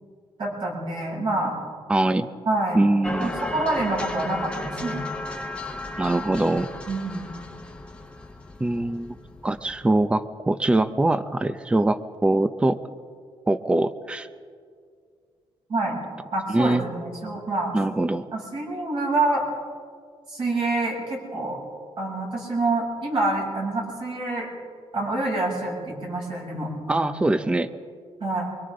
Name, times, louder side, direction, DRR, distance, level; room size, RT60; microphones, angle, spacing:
voice 1, 0.4-1.6 2.5-2.9 3.2-5.0 6.9-7.3 15.7-16.0 16.3-17.8 18.3-19.4 20.3-21.6 22.0-24.5 24.9-27.1 28.2-28.5, right 2 dB, 50° right, -3 dB, 7.6 m, -27 dB
voice 2, 1.9-2.3 2.7-3.3 6.0-6.7 8.6-9.2 9.4-12.8 13.5-14.3 16.5-16.8 17.7-18.2 26.9-27.7, right 2 dB, 10° right, 11 dB, 0.6 m, -23 dB
sound 1, 3.0-10.1, left 2 dB, 10° left, 1.1 m, -35 dB
29.0 x 23.5 x 3.8 m, 2.1 s
cardioid pair, 155°, 10 cm